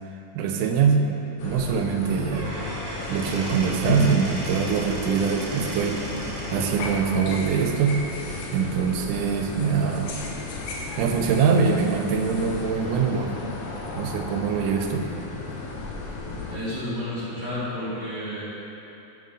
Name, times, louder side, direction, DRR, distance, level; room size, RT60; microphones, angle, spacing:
voice 1, 0.4-2.6 3.1-6.0 6.5-8.0 8.5-10.1 11.0-13.3 14.0-15.1, right 6 dB, 90° right, 3 dB, 2.1 m, -23 dB
sound 1, 1.4-16.5, left 3 dB, 75° left, 1.6 m, -33 dB
Squeak / Wood, 2.1-6.7, right 1 dB, 50° right, 1.4 m, -35 dB
voice 2, 16.5-18.4, left 1 dB, 60° left, -13 dB, 0.9 m, -31 dB
6.4 x 5.4 x 3.8 m, 3.0 s
omnidirectional pair, 3.5 m